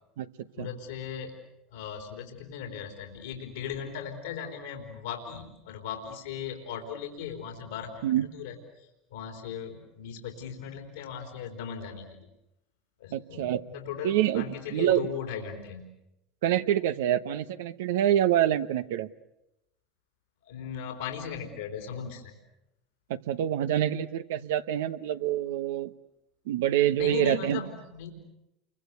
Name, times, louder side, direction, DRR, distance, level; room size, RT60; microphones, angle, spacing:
voice 1, 0.6-1.3 1.7-8.5 9.1-12.3 13.0-15.9 20.4-22.3 27.0-28.1, left 7 dB, 85° left, 4 dB, 3.8 m, -38 dB
voice 2, 13.1-13.6 14.0-15.1 16.4-19.1 23.1-25.9 26.5-27.6, right 11 dB, 75° right, 12 dB, 1.1 m, -26 dB
29.5 x 24.0 x 8.2 m, 0.89 s
hypercardioid pair, 85°, 0 cm